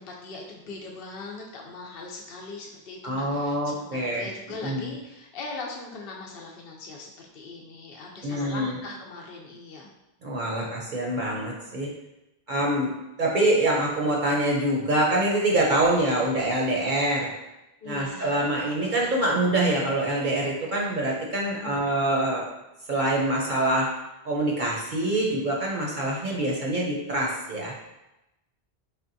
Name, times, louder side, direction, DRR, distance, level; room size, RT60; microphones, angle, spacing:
voice 1, 0.0-9.9 17.8-18.4 21.6-21.8, left 3 dB, 65° left, -1 dB, 0.7 m, -40 dB
voice 2, 3.0-4.3 4.6-4.9 8.2-8.7 10.2-11.9 12.5-12.9 13.2-17.3 17.8-22.4 22.9-23.9 24.2-27.7, right 1 dB, 55° right, -3 dB, 0.7 m, -25 dB
4.3 x 3.4 x 2.6 m, 0.94 s
omnidirectional pair, 1.1 m